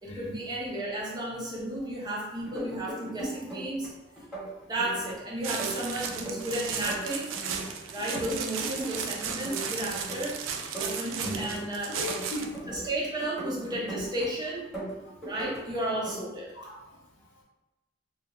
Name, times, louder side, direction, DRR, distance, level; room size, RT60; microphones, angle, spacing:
voice 1, 0.0-3.9 4.7-7.3 7.9-10.4 10.8-12.0 12.7-14.7 15.2-16.5, right 1 dB, 20° right, -5 dB, 0.6 m, -33 dB
sound 1, 2.4-3.9 4.2-5.2 5.4-7.7 8.0-9.0 9.3-10.3 10.6-12.9 13.2-14.3 14.6-15.6 15.9-16.2, right 1 dB, ahead, 1.0 m, -39 dB
sound 2, 5.4-12.6, right 6 dB, 85° right, 0.3 m, -35 dB
voice 2, 11.9-12.7 16.5-16.8, left 1 dB, 70° left, -3 dB, 0.7 m, -37 dB
2.3 x 2.2 x 2.9 m, 1.1 s
head